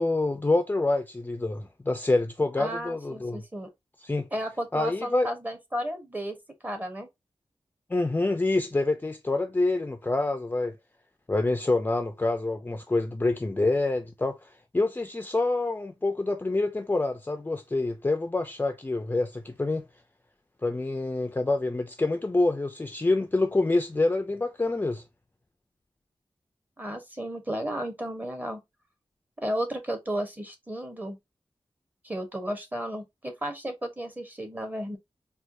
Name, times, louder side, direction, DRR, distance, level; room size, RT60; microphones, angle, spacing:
voice 1, 0.0-3.4 4.0-4.3 4.7-5.3 7.9-10.8 11.3-19.8 20.6-25.0, left 2 dB, 20° left, 0.4 m, -27 dB
voice 2, 2.6-3.7 4.3-6.4 6.6-7.1 26.8-28.6 29.4-31.2 32.0-35.0, right 1 dB, 20° right, 0.9 m, -33 dB
4.3 x 2.2 x 2.6 m
wide cardioid pair, 95°, 10 cm